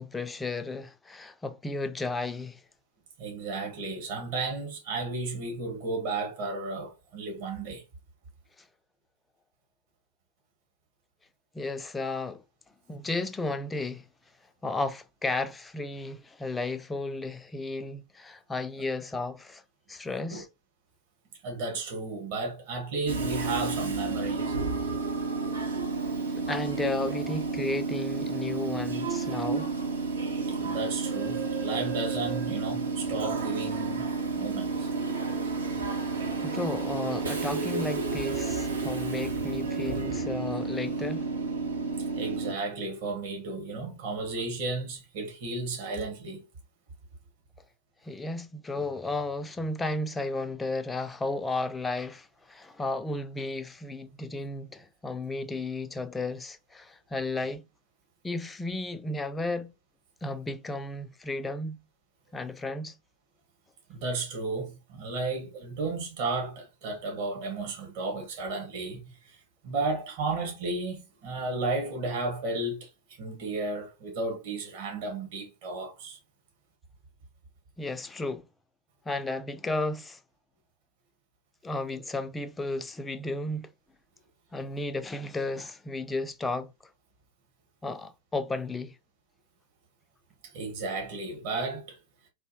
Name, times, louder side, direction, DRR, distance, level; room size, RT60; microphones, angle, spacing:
voice 1, 0.0-2.6 11.5-12.4 12.9-14.0 14.6-19.6 19.9-20.5 26.3-29.7 36.4-41.3 48.0-57.6 58.2-59.7 60.2-61.8 62.3-62.9 77.8-78.4 79.1-80.2 81.6-83.7 84.5-86.7 87.8-89.0, left 2 dB, 10° left, 0.3 m, -33 dB
voice 2, 3.2-7.8 20.3-20.4 21.4-24.5 30.5-34.1 34.3-34.9 42.1-46.4 63.9-69.4 69.6-72.9 73.2-76.2 90.4-92.0, right 3 dB, 50° right, 1.4 m, -33 dB
Train / Subway metro underground, 23.1-42.5, right 4 dB, 70° right, 0.8 m, -31 dB
4.3 x 2.7 x 2.8 m
figure-of-eight pair, 90°, 0 cm